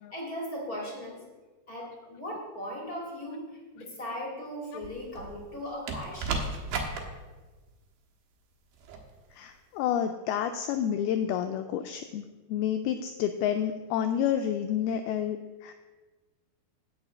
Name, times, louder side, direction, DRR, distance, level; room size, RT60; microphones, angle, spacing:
voice 1, 0.1-1.2 1.7-6.4, equal, 30° left, -3 dB, 2.0 m, -38 dB
sound 1, 4.8-5.4 5.9-7.0 8.8-9.0, right 4 dB, 65° right, 2.9 m, -33 dB
voice 2, 9.3-12.2 12.5-15.7, left 9 dB, 85° left, 8 dB, 2.2 m, -29 dB
9.9 x 6.1 x 8.2 m, 1.3 s
omnidirectional pair, 4.9 m